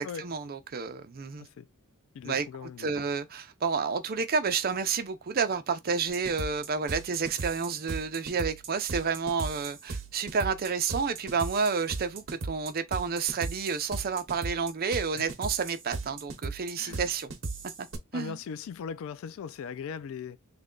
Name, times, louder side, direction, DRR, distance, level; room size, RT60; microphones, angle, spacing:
voice 1, 0.0-1.5 2.2-2.5 2.8-17.3 17.8-17.9 18.1-18.4, right 5 dB, 45° right, 0.5 m, -30 dB
voice 2, 2.1-3.1 15.2-15.3 16.8-17.1 18.1-20.4, left 6 dB, 65° left, 0.3 m, -39 dB
sound 1, 6.1-18.0, right 3 dB, 60° right, 0.9 m, -37 dB
3.3 x 2.2 x 3.7 m
head